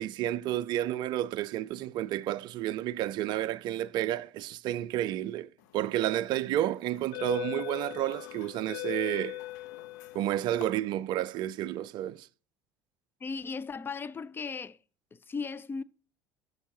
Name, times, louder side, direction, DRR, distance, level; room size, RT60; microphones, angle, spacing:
voice 1, 0.0-9.4 10.1-12.3, right 13 dB, 45° right, 0.4 m, -31 dB
sound 1, 5.9-6.1 6.8-10.6, left 18 dB, 60° left, 0.8 m, -39 dB
voice 2, 13.2-14.8 15.1-15.8, left 5 dB, 20° left, 0.4 m, -36 dB
12.5 x 6.5 x 2.9 m
figure-of-eight pair, 60°, 11 cm